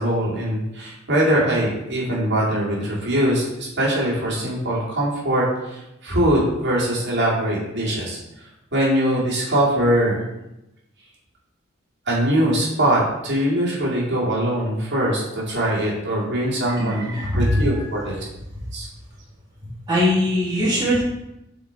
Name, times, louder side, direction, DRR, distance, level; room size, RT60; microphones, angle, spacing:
voice 1, 0.0-8.2 8.7-10.2 12.1-18.1 18.7-18.8, right 1 dB, 60° right, -5 dB, 2.3 m, -22 dB
voice 2, 16.7-17.9 18.5-18.6 19.9-21.0, left 1 dB, 20° right, -8 dB, 1.5 m, -21 dB
6.8 x 4.1 x 4.0 m, 0.91 s
head